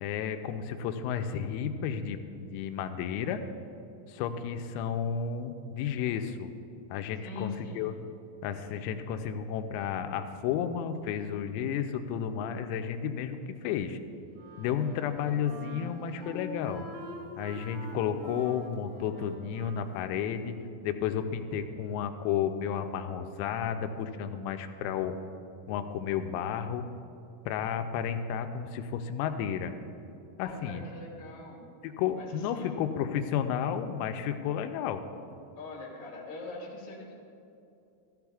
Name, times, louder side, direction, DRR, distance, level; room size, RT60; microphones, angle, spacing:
voice 1, 0.0-3.4 4.1-6.5 6.9-7.9 8.4-14.0 14.6-16.8 17.4-20.6 20.8-25.2 25.7-26.8 27.5-29.7 30.4-30.8 31.8-35.0, left 8 dB, 90° left, 7 dB, 3.3 m, -32 dB
voice 2, 7.2-8.0 30.4-31.7 32.1-32.8 35.5-37.1, left 3 dB, 45° left, -4 dB, 1.1 m, -42 dB
Wind instrument woodwind instrument, 14.3-20.0, left 1 dB, 80° right, 3.6 m, -45 dB
15.0 x 13.5 x 2.4 m, 2.7 s
omnidirectional pair, 6.0 m